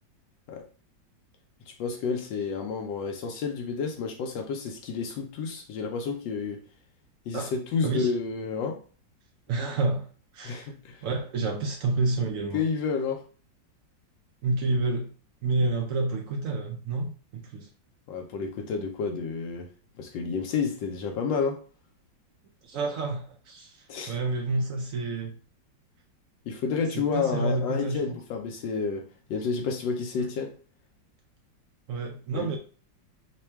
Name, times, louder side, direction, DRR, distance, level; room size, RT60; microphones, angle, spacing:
voice 1, 1.7-6.6 7.3-8.8 10.4-11.1 12.5-13.2 18.1-19.7 20.0-21.6 23.9-24.2 26.5-30.6 32.3-32.6, left 5 dB, 85° left, 1.3 m, -30 dB
voice 2, 9.5-10.1 10.3-10.7 11.0-12.6 14.4-15.1 15.4-17.7 22.6-25.4 26.9-28.1 30.2-30.3 31.9-32.6, right 3 dB, 80° right, 0.7 m, -29 dB
3.3 x 2.2 x 4.3 m
omnidirectional pair, 2.0 m